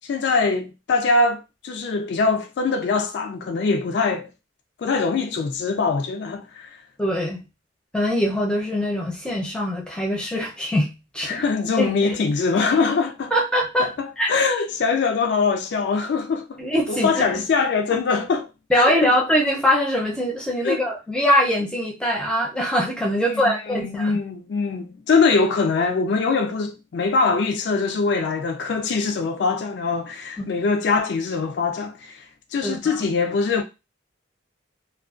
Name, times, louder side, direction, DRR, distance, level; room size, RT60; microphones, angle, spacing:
voice 1, 0.0-4.3 4.8-6.8 11.3-13.3 13.8-18.5 18.7-19.1 20.6-20.8 23.2-32.2 32.5-33.6, left 4 dB, 60° left, 0.3 m, -23 dB
voice 2, 7.0-7.4 7.9-11.4 11.8-12.2 13.3-13.9 14.2-14.3 16.6-17.2 18.7-24.2 30.4-30.5 32.6-33.1, equal, 5° left, 0.5 m, -22 dB
2.4 x 2.1 x 2.4 m
head